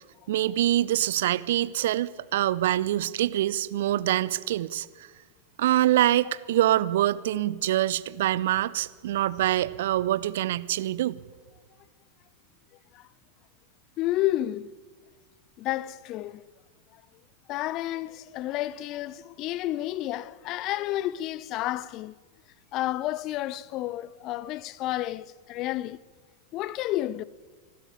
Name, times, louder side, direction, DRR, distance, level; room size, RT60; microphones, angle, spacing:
voice 1, 0.3-5.1 5.6-11.2, right 13 dB, 55° right, 0.7 m, -25 dB
voice 2, 14.0-14.7 15.6-16.5 16.9-17.0 17.5-22.2 22.7-26.0 26.5-27.2, left 15 dB, 40° left, 0.7 m, -31 dB
24.0 x 12.5 x 8.8 m
figure-of-eight pair, 90°, 0 cm